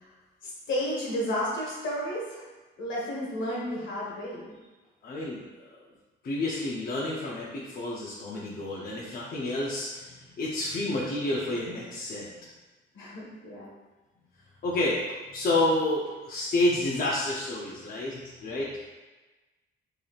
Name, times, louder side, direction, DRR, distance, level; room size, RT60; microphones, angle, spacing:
voice 1, 0.4-2.4 2.8-4.5 12.9-13.7, equal, 75° left, -5 dB, 1.4 m, -32 dB
voice 2, 5.0-5.4 6.2-12.3 14.6-15.0 15.3-18.7, left 1 dB, 45° left, -6 dB, 0.7 m, -29 dB
4.8 x 2.9 x 2.4 m, 1.2 s
cardioid pair, 90°, 20 cm